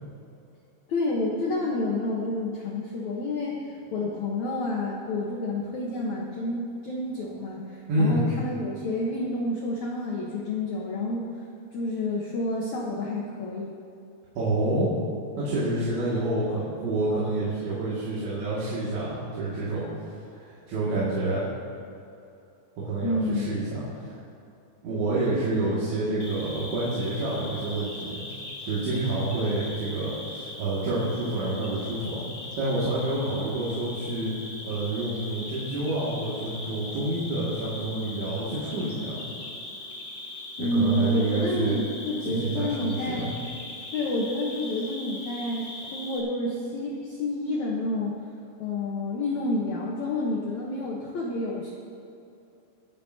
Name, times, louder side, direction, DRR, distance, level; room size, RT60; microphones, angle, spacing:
voice 1, 0.9-11.3 11.7-13.7 23.0-23.5 40.6-43.3 43.9-45.7 45.9-48.2 48.6-51.7, left 2 dB, 80° left, -3 dB, 1.6 m, -29 dB
voice 2, 7.9-8.3 14.4-14.9 15.4-19.9 20.3-21.5 22.8-24.1 24.8-28.2 28.6-32.3 32.6-34.3 34.6-39.2 40.6-41.8 42.3-43.3, right 2 dB, 85° right, -9 dB, 4.5 m, -28 dB
Cricket, 26.2-46.2, left 2 dB, 55° left, 1.1 m, -40 dB
25.0 x 9.4 x 2.8 m, 2.8 s
omnidirectional pair, 5.1 m